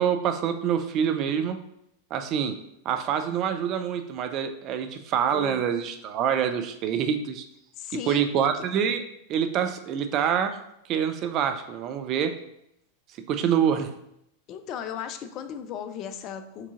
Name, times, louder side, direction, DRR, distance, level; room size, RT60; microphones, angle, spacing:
voice 1, 0.0-1.6 2.1-2.6 2.9-7.4 8.1-9.0 9.3-10.6 10.9-12.3 13.3-13.9, right 8 dB, 35° right, 7 dB, 0.4 m, -26 dB
voice 2, 5.3-5.7 7.8-8.6 14.5-16.7, left 8 dB, 35° left, 9 dB, 0.3 m, -36 dB
4.7 x 2.8 x 3.6 m, 0.78 s
figure-of-eight pair, 90°, 0 cm